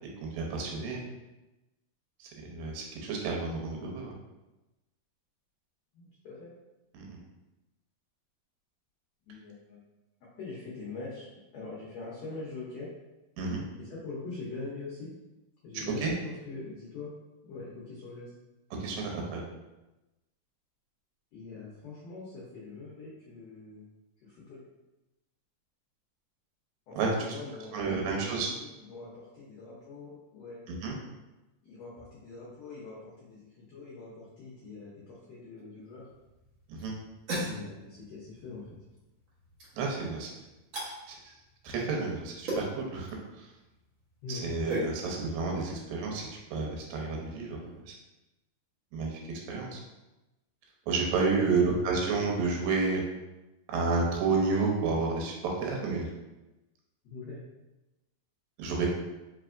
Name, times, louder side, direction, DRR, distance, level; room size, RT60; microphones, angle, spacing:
voice 1, 0.0-1.0 2.2-4.2 6.9-7.2 13.4-13.6 15.7-16.1 18.8-19.4 27.0-27.1 27.7-28.5 30.7-30.9 36.7-36.9 39.8-40.3 41.1-41.2 41.6-43.1 43.4-43.5 44.3-47.9 48.9-49.2 49.5-49.8 50.9-53.0 53.7-56.1 58.6-58.9, right 4 dB, 85° right, 0 dB, 2.5 m, -30 dB
voice 2, 5.9-6.5 9.2-9.9 10.4-11.3 11.5-12.9 13.8-15.1 15.6-17.1 17.4-18.3 21.3-23.9 24.2-24.6 26.9-30.6 31.6-36.1 37.4-38.8 44.2-44.5 51.3-51.6 57.0-57.4, left 3 dB, 75° left, -6 dB, 1.5 m, -43 dB
sound 1, 35.8-47.8, right 1 dB, 65° right, 1.2 m, -41 dB
4.9 x 3.3 x 2.5 m, 1.0 s
omnidirectional pair, 4.0 m